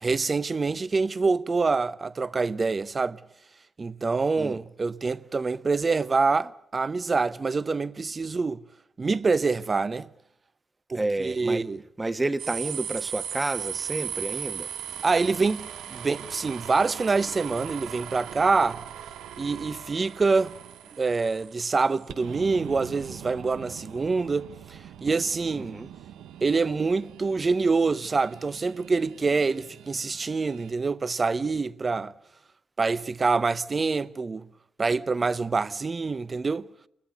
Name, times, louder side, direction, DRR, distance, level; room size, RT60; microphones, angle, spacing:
voice 1, 0.0-3.2 3.8-8.6 9.0-10.1 10.9-11.8 15.0-18.8 19.4-20.5 21.0-25.8 26.4-32.1 32.8-34.5 34.8-36.7, right 4 dB, 40° right, 0.8 m, -26 dB
voice 2, 10.9-11.7 12.0-14.7 25.5-25.9, right 2 dB, 20° right, 1.3 m, -30 dB
sound 1, 12.4-30.7, right 9 dB, 85° right, 0.9 m, -39 dB
28.0 x 20.5 x 6.7 m
supercardioid pair, 60°, 0 cm